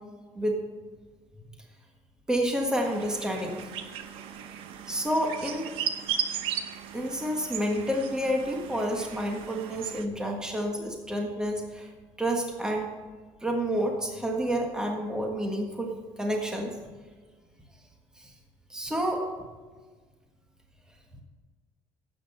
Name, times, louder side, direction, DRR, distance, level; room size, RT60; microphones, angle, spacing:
voice 1, 2.3-3.6 4.9-5.7 6.9-11.9 12.2-12.9 13.4-16.7 18.2-18.3 18.7-19.2, equal, 5° right, 1 dB, 1.6 m, -29 dB
sound 1, 2.7-10.0, right 8 dB, 75° right, 1.0 m, -36 dB
12.0 x 8.8 x 5.6 m, 1.4 s
cardioid pair, 140°, 9 cm